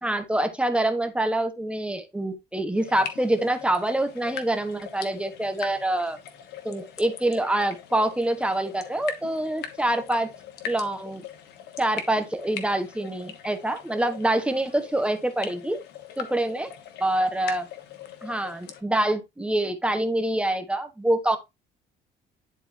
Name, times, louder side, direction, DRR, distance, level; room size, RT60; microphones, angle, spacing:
voice 1, 0.0-6.2 6.6-10.3 10.6-11.2 11.8-15.8 16.2-16.7 17.0-17.7 18.2-21.4, right 1 dB, 5° right, 1.1 m, -26 dB
sound 1, 2.7-18.8, left 8 dB, 80° left, 1.3 m, -41 dB
10.5 x 4.2 x 2.7 m
cardioid pair, 110°, 17 cm